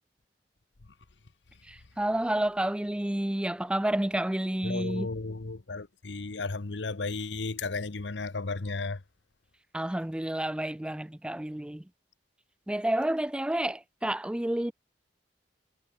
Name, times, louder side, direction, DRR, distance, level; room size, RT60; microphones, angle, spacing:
voice 1, 1.7-5.1 9.7-11.8 12.7-14.7, right 1 dB, 5° right, 0.3 m, -30 dB
voice 2, 4.6-9.0, left 3 dB, 75° left, 1.0 m, -34 dB
head